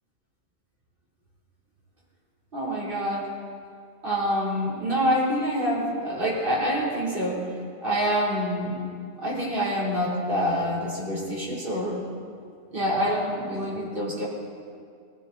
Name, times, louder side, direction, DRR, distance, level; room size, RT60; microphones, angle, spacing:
voice 1, 2.5-3.3 4.0-7.4 7.8-8.8 9.2-12.0 12.7-14.3, equal, 55° right, -7 dB, 4.2 m, -26 dB
20.5 x 15.5 x 4.2 m, 2.2 s
omnidirectional pair, 1.1 m